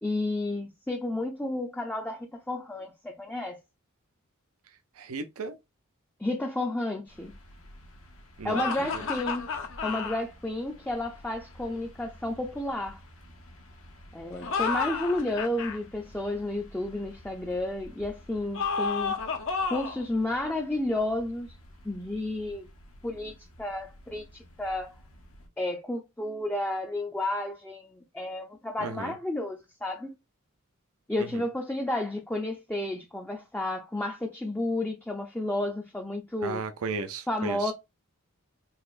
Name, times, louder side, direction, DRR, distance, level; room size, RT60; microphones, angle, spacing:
voice 1, 0.0-3.6 6.2-7.3 8.4-9.5 9.8-13.0 14.1-19.2 19.7-21.5 21.8-22.7 23.0-24.9 25.6-30.1 31.1-36.6 37.3-37.7, left 1 dB, 5° left, 0.4 m, -31 dB
voice 2, 5.0-5.6 8.4-8.6 8.9-9.0 28.8-29.1 31.2-31.4 36.4-37.7, right 3 dB, 75° right, 0.5 m, -35 dB
sound 1, 7.1-25.5, equal, 90° left, 1.3 m, -52 dB
sound 2, 8.5-10.2 14.3-15.8 18.5-20.0, left 5 dB, 65° left, 0.7 m, -31 dB
4.0 x 2.9 x 2.4 m
head